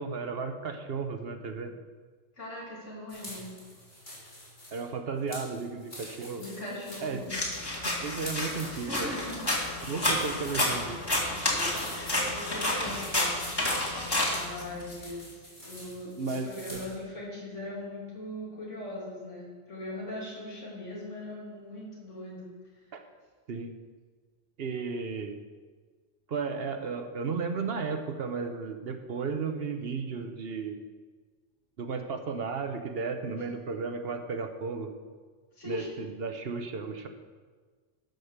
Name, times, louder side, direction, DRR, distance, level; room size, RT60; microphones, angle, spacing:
voice 1, 0.0-1.8 4.7-6.4 7.0-7.2 7.7-9.1 9.8-11.0 16.2-16.8 22.9-23.0 23.5-23.7 24.6-25.4 26.3-30.8 31.8-34.9 35.6-37.1, right 5 dB, 60° right, 7 dB, 1.0 m, -34 dB
voice 2, 2.4-3.5 6.4-7.4 8.7-9.4 11.5-13.4 14.3-22.5 33.4-33.5 35.6-35.9, left 1 dB, 85° left, -5 dB, 3.2 m, -40 dB
sound 1, 3.1-17.0, left 1 dB, 40° left, 3.5 m, -47 dB
sound 2, 7.3-15.0, left 1 dB, 20° left, 2.0 m, -30 dB
12.0 x 5.3 x 6.6 m, 1.5 s
omnidirectional pair, 1.2 m